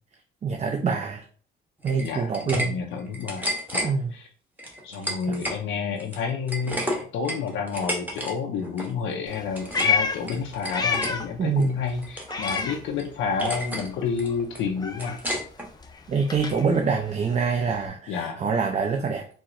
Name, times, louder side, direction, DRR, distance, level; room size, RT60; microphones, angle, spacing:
voice 1, 0.4-1.2 1.8-2.8 3.8-4.2 5.0-5.4 11.4-11.8 16.1-19.3, right 5 dB, 35° right, 4 dB, 0.4 m, -25 dB
sound 1, 1.8-2.7 3.0-3.9 4.6-5.6 6.0-8.3 8.6-8.9 9.3-10.0 10.3-11.1 11.6-12.7 13.0-13.1 13.4-13.9 14.2-15.7, equal, 10° right, 0.9 m, -31 dB
voice 2, 2.0-4.3 4.8-15.2 18.1-18.4, left 6 dB, 85° left, 2 dB, 0.5 m, -30 dB
Meow, 9.3-11.4 11.7-13.4 13.7-17.9, left 5 dB, 20° left, 0.4 m, -30 dB
4.3 x 2.0 x 2.4 m, 0.43 s
cardioid pair, 90°, 20 cm